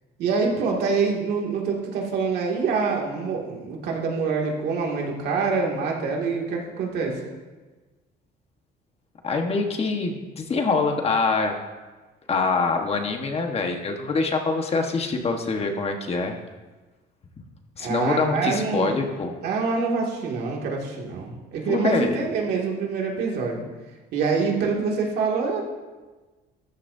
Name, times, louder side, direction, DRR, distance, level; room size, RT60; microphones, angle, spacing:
voice 1, 0.2-7.2 17.8-18.9 19.4-23.6 24.1-25.6, right 4 dB, 75° right, -1 dB, 2.4 m, -25 dB
voice 2, 9.2-11.5 12.3-16.3 17.8-19.4 21.7-22.2, left 4 dB, 35° left, 4 dB, 1.4 m, -24 dB
14.0 x 11.0 x 2.8 m, 1.3 s
cardioid pair, 110°, 17 cm